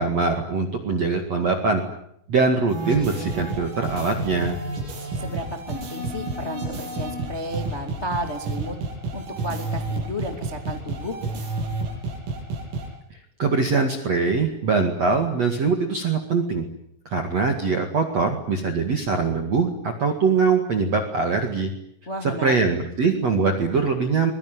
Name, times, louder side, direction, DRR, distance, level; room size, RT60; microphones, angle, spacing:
voice 1, 0.0-1.8 2.3-4.6 13.1-16.6 17.1-21.7 22.2-24.3, right 4 dB, 45° right, 4 dB, 2.2 m, -22 dB
sound 1, 2.7-12.9, right 2 dB, 90° right, 9.6 m, -30 dB
voice 2, 5.2-8.7 9.1-11.2 22.0-22.5, equal, 20° left, 4 dB, 1.7 m, -32 dB
25.0 x 22.5 x 9.4 m, 0.72 s
omnidirectional pair, 5.9 m